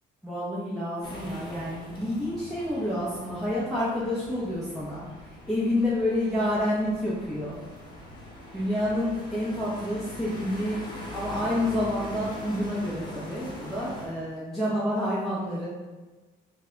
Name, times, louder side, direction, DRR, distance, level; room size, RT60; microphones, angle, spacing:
voice 1, 0.2-5.0 5.5-7.6 8.5-10.8 11.1-15.7, left 1 dB, ahead, -10 dB, 0.8 m, -28 dB
sound 1, 1.0-14.1, left 1 dB, 25° left, 1.0 m, -42 dB
3.3 x 2.2 x 3.8 m, 1.2 s
cardioid pair, 110°, 17 cm